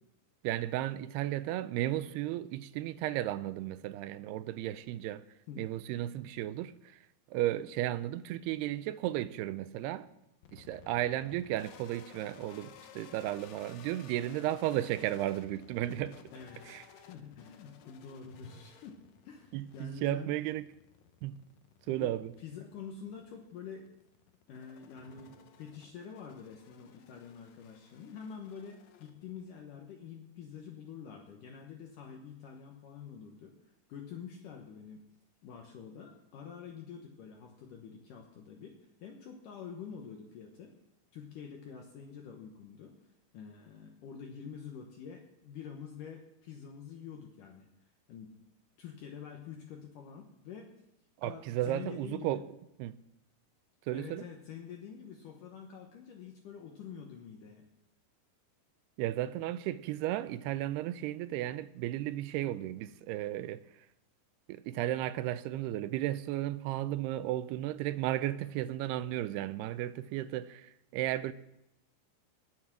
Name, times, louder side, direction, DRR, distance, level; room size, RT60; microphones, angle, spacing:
voice 1, 0.4-5.2 5.6-6.7 7.3-10.1 10.5-16.2 16.7-16.8 19.5-20.6 21.2-21.4 21.9-22.3 51.2-52.4 52.8-53.0 53.9-54.2 59.0-63.6 64.5-71.3, right 14 dB, 90° right, 2.7 m, -34 dB
sound 1, 10.4-29.6, left 8 dB, 85° left, 1.5 m, -57 dB
voice 2, 16.3-19.0 19.2-20.3 21.9-23.9 24.5-35.0 35.4-40.7 41.1-42.9 43.3-47.7 48.1-48.3 48.8-50.7 51.2-52.4 53.9-57.7, left 7 dB, 65° left, 2.4 m, -47 dB
sound 2, 18.2-21.3 21.6-21.7 25.0-28.3, left 2 dB, 25° left, 6.1 m, -62 dB
19.5 x 7.3 x 6.1 m
omnidirectional pair, 4.6 m